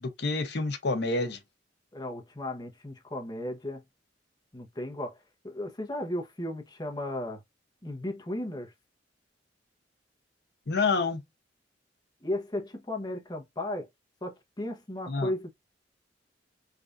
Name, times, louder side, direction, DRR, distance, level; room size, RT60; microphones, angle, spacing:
voice 1, 0.0-1.4 10.7-11.2 15.1-15.3, left 3 dB, 60° left, 0.7 m, -28 dB
voice 2, 1.9-3.8 4.5-5.1 5.4-7.4 7.8-8.7 12.2-13.9 14.2-15.5, left 1 dB, 20° left, 0.8 m, -35 dB
3.3 x 2.5 x 2.5 m
head